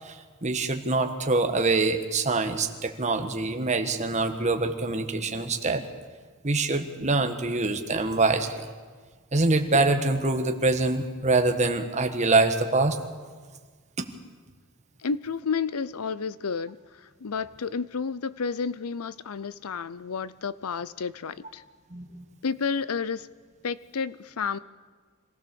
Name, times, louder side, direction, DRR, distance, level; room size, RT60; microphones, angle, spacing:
voice 1, 0.0-5.8 6.4-8.7 9.3-13.0 14.0-14.1 21.9-22.2, right 3 dB, 35° right, 6 dB, 1.4 m, -25 dB
voice 2, 15.0-21.6 22.4-23.3 23.6-24.6, left 5 dB, 85° left, 17 dB, 0.6 m, -31 dB
26.0 x 16.5 x 7.0 m, 1.5 s
head